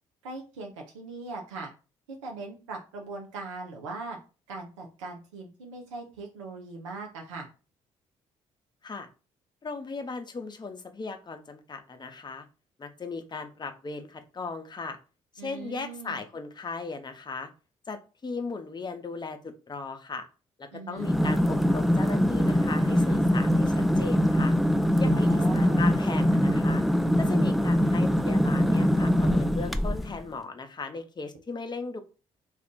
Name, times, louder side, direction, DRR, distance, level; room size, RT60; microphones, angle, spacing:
voice 1, 0.2-1.7 2.1-4.2 4.5-7.5 15.4-16.2 20.7-21.1 25.1-25.8, right 3 dB, 90° right, 2 dB, 0.5 m, -40 dB
voice 2, 9.6-12.4 12.8-15.0 15.3-17.5 17.9-20.3 20.6-24.5 25.0-26.8 27.2-32.0, left 4 dB, 30° left, 6 dB, 0.7 m, -37 dB
sound 1, 21.0-30.2, equal, ahead, 0.3 m, -23 dB
2.4 x 2.4 x 3.7 m, 0.33 s
hypercardioid pair, 45°, 15 cm